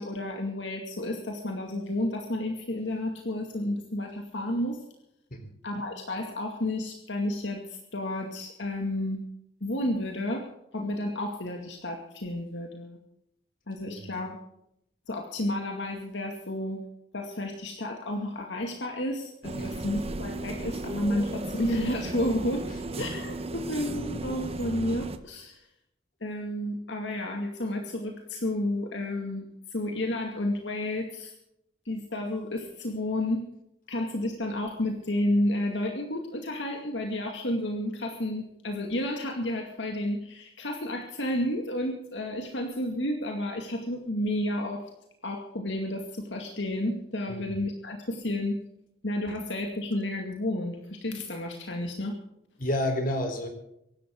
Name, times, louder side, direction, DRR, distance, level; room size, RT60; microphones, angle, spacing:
voice 1, 0.0-4.8 5.6-9.2 9.6-10.4 10.7-13.0 13.7-14.4 15.1-16.8 17.1-22.7 23.0-25.6 26.2-31.3 31.9-33.4 33.9-44.8 45.2-48.6 49.0-52.2, left 1 dB, 75° left, 2 dB, 2.3 m, -31 dB
voice 2, 13.9-14.2 19.6-19.8 23.0-23.1 47.3-47.5 52.6-53.5, left 1 dB, 50° left, 5 dB, 3.9 m, -31 dB
sound 1, 19.4-25.2, right 2 dB, 35° right, 1.3 m, -35 dB
24.0 x 12.0 x 3.8 m, 0.79 s
head